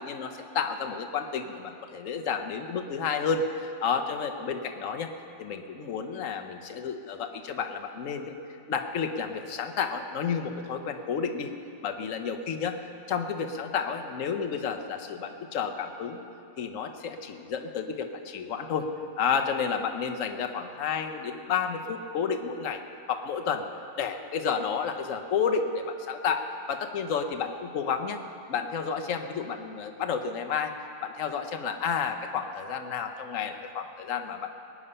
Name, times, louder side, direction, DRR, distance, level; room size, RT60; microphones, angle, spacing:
voice 1, 0.0-5.1 5.4-8.3 8.7-11.5 11.8-12.8 13.1-16.2 16.6-18.9 19.2-22.8 23.1-23.6 24.0-28.2 28.5-30.7 31.0-34.6, left 6 dB, 60° left, 5 dB, 1.2 m, -31 dB
20.5 x 9.9 x 5.6 m, 2.7 s
omnidirectional pair, 1.6 m